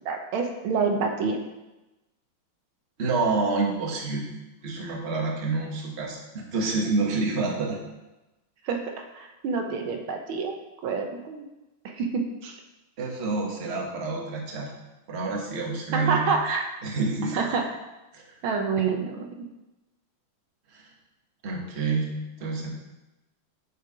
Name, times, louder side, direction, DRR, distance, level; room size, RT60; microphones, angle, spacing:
voice 1, 0.0-1.4 8.6-10.5 10.8-11.4 11.8-12.6 15.9-16.7 17.3-17.8 18.4-19.4, right 5 dB, 85° right, 3 dB, 1.7 m, -27 dB
voice 2, 3.0-4.2 4.6-7.8 13.0-14.7 15.1-16.2 16.8-17.4 18.1-18.2 20.7-20.9 21.4-22.7, right 3 dB, 35° right, -1 dB, 1.4 m, -28 dB
6.6 x 6.5 x 4.9 m, 1.0 s
omnidirectional pair, 2.3 m